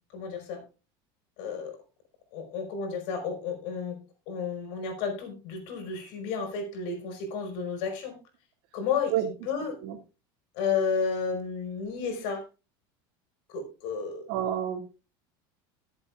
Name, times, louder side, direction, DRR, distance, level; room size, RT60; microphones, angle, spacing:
voice 1, 0.1-0.6 1.4-1.8 2.3-4.0 4.3-8.2 8.7-9.8 10.6-12.5 13.5-14.3, left 5 dB, 70° left, 5 dB, 5.2 m, -32 dB
voice 2, 14.3-14.8, right 11 dB, 80° right, 5 dB, 2.4 m, -28 dB
20.0 x 8.3 x 2.4 m, 0.30 s
supercardioid pair, 125°, 12 cm